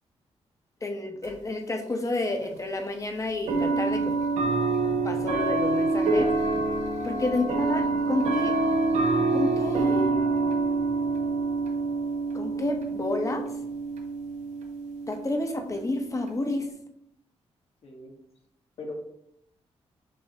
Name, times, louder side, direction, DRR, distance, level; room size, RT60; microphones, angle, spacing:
voice 1, 0.8-4.1 5.0-6.3 7.0-8.6 9.3-10.1 12.3-13.4 15.1-16.7, left 2 dB, 25° left, 4 dB, 0.8 m, -30 dB
sound 1, 1.2-1.3 2.4-2.5 3.5-16.7, right 3 dB, 85° right, 0.7 m, -27 dB
voice 2, 17.8-18.1 18.8-18.9, left 2 dB, 60° left, 1 dB, 1.2 m, -40 dB
6.3 x 2.8 x 2.8 m, 0.76 s
cardioid pair, 80°, 12 cm